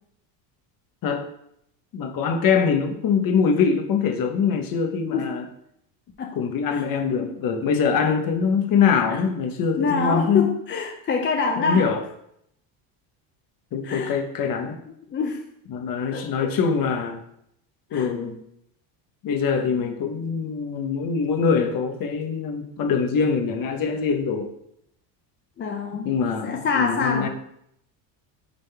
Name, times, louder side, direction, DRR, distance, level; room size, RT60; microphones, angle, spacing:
voice 1, 1.9-5.4 6.3-10.5 11.6-12.0 13.7-14.8 15.7-17.2 17.9-18.4 19.2-24.5 26.0-27.3, left 6 dB, 45° left, 1.1 m, -23 dB
voice 2, 9.7-11.9 13.8-14.2 15.1-15.4 16.1-16.5 17.9-18.1 25.6-26.2 26.4-27.3, left 5 dB, 25° left, 0.5 m, -26 dB
9.2 x 4.0 x 3.4 m
cardioid pair, 125°, 48 cm